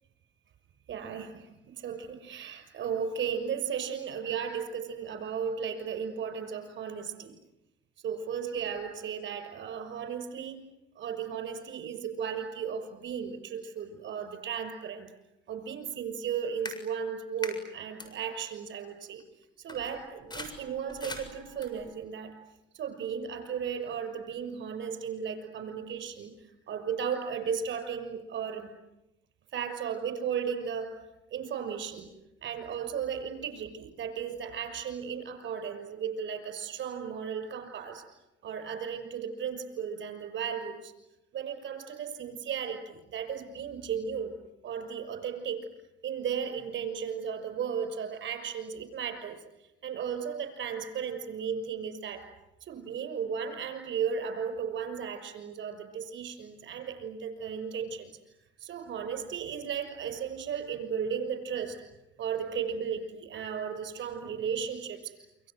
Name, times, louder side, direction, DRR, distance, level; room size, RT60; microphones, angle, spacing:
voice 1, 0.9-7.4 8.0-10.6 11.0-15.1 15.5-19.2 19.6-22.3 22.7-28.7 29.5-31.0 31.3-32.1 32.4-38.1 38.4-40.9 41.3-44.4 44.6-45.7 46.0-49.4 49.8-52.3 52.6-61.8 62.2-65.5, right 7 dB, 70° right, 8 dB, 6.3 m, -35 dB
sound 1, 16.6-16.8 17.4-17.6 18.0-18.1 19.2-19.3 19.7-22.0, left 2 dB, 20° left, 7.3 m, -42 dB
28.5 x 26.0 x 8.0 m, 0.92 s
cardioid pair, 90°, 20 cm